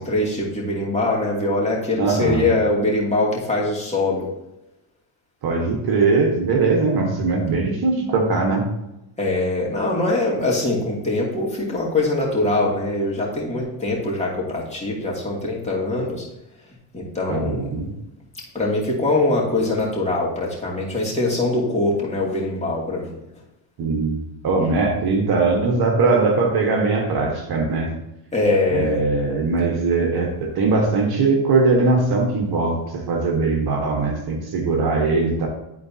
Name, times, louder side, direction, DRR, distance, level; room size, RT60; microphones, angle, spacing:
voice 1, 0.0-4.3 9.2-16.2 16.9-17.7 18.5-23.1 28.3-29.0, left 2 dB, 15° left, -4 dB, 2.7 m, -22 dB
voice 2, 2.0-2.5 5.4-8.7 17.3-17.9 23.8-27.9 28.7-35.5, right 3 dB, 55° right, 1 dB, 1.6 m, -20 dB
11.5 x 4.2 x 2.9 m, 0.91 s
supercardioid pair, 90°, 45 cm